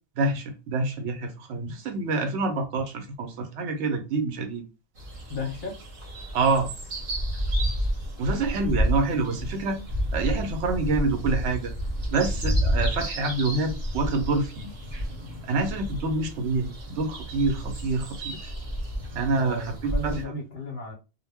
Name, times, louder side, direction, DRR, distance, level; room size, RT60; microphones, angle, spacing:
voice 1, 0.2-4.6 6.3-6.7 8.2-9.8 10.1-11.7 12.1-14.7 15.4-18.5 19.1-20.2, right 3 dB, 70° right, 0.8 m, -27 dB
sound 1, 5.0-20.2, equal, 40° right, 0.8 m, -30 dB
voice 2, 5.3-5.8 19.4-20.9, left 2 dB, 50° left, 0.7 m, -34 dB
2.1 x 2.0 x 3.3 m
omnidirectional pair, 1.3 m